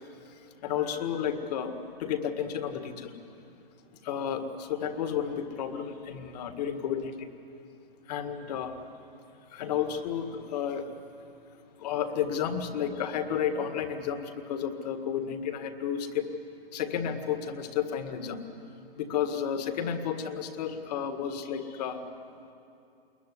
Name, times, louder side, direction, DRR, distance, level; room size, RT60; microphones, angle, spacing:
voice 1, 0.6-3.1 4.0-7.3 8.1-8.8 9.5-10.9 11.8-16.3 16.7-18.4 19.0-22.0, left 8 dB, 45° left, 8 dB, 1.9 m, -32 dB
21.5 x 20.0 x 9.9 m, 2.6 s
hypercardioid pair, 150°, 30 cm